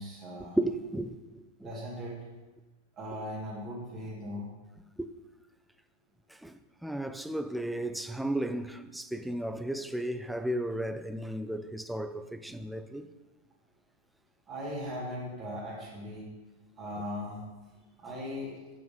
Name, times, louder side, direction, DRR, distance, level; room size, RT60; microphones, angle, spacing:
voice 1, 0.0-0.6 1.6-2.2 2.9-4.5 14.5-16.3 16.8-17.4 18.0-18.6, equal, 30° right, 2.3 m, -38 dB
voice 2, 0.6-1.7 5.0-5.1 6.3-13.1, right 1 dB, ahead, 0.4 m, -34 dB
7.0 x 6.1 x 5.3 m
figure-of-eight pair, 90°, 0 cm